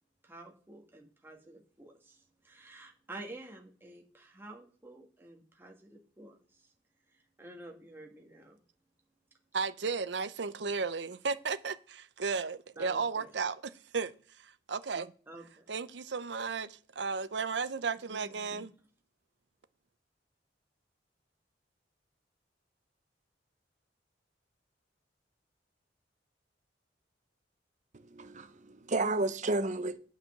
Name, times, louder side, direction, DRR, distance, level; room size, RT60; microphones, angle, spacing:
voice 1, 0.2-6.4 7.4-8.6 12.8-13.3 15.3-15.6 18.1-18.7, right 2 dB, 15° right, 1.5 m, -50 dB
voice 2, 9.5-15.1 15.7-18.7, right 5 dB, 70° right, 0.7 m, -34 dB
voice 3, 27.9-30.0, right 2 dB, 45° right, 0.9 m, -32 dB
8.9 x 5.1 x 6.6 m
head